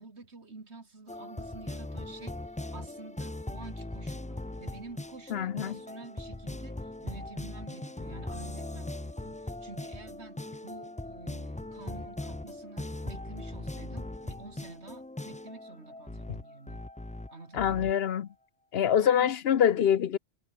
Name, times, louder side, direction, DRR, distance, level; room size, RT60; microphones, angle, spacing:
voice 1, 0.0-16.9 17.3-17.7 19.0-19.4, right 3 dB, 85° right, 3.0 m, -49 dB
sound 1, 1.1-17.9, left 2 dB, 10° left, 0.4 m, -40 dB
voice 2, 5.3-5.8 16.3-16.4 17.5-18.3 18.7-20.2, left 9 dB, 65° left, 1.0 m, -25 dB
omnidirectional pair, 1.1 m